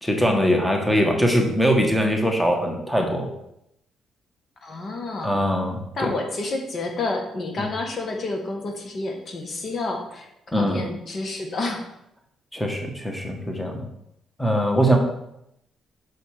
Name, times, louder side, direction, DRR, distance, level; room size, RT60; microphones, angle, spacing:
voice 1, 0.0-3.3 5.2-6.1 10.5-10.8 12.5-13.8 14.4-15.0, equal, 5° left, 2 dB, 1.6 m, -22 dB
voice 2, 4.6-5.3 5.9-11.8, left 2 dB, 50° left, 3 dB, 1.4 m, -29 dB
6.4 x 5.1 x 6.5 m, 0.80 s
cardioid pair, 90°, 0 cm